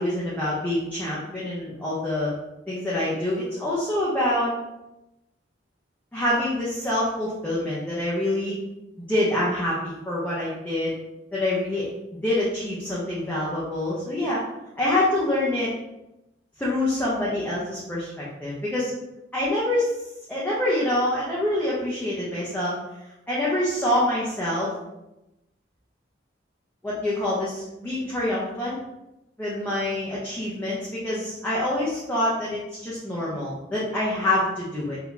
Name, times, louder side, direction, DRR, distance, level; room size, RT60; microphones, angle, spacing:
voice 1, 0.0-2.3 2.7-4.5 6.1-8.6 9.0-10.9 11.3-14.4 14.8-15.7 16.6-18.9 19.3-19.9 20.3-22.7 23.3-24.7 26.8-28.8 29.4-30.8 31.0-35.0, left 1 dB, 10° left, -8 dB, 0.8 m, -26 dB
3.9 x 2.9 x 3.5 m, 0.93 s
head